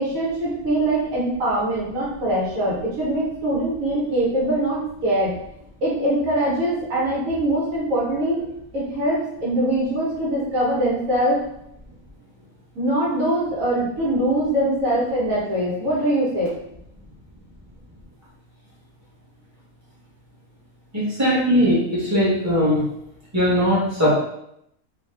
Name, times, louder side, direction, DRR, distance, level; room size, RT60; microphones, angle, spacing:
voice 1, 0.0-5.3 5.8-8.4 8.7-11.4 12.8-16.5, right 1 dB, 80° right, -7 dB, 1.4 m, -22 dB
voice 2, 20.9-22.8 23.3-24.2, equal, 15° right, -9 dB, 1.3 m, -19 dB
3.1 x 2.8 x 3.3 m, 0.77 s
omnidirectional pair, 1.4 m